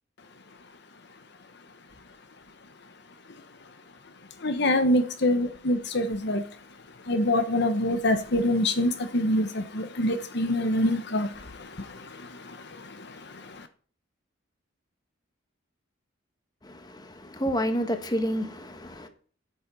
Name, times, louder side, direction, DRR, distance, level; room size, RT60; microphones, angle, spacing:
voice 1, 4.4-6.4 7.1-11.3, left 1 dB, 60° left, 1.2 m, -24 dB
voice 2, 16.6-19.1, equal, 20° left, 1.3 m, -29 dB
8.7 x 8.5 x 6.9 m
head